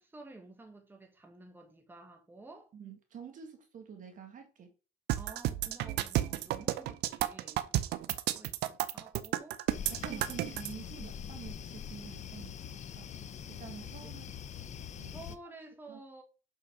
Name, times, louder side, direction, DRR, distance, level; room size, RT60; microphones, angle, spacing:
voice 1, 0.0-2.7 5.2-9.6 14.0-14.1 15.0-16.2, right 2 dB, 10° right, 1.5 m, -52 dB
voice 2, 2.7-4.7 6.3-6.4 9.9-13.1 13.5-14.2 15.0-15.2 15.9-16.0, right 7 dB, 50° right, 2.0 m, -48 dB
sound 1, 5.1-10.7, right 14 dB, 80° right, 0.6 m, -32 dB
sound 2, 9.7-15.4, left 8 dB, 45° left, 0.7 m, -44 dB
6.2 x 5.8 x 5.0 m
cardioid pair, 110°, 17 cm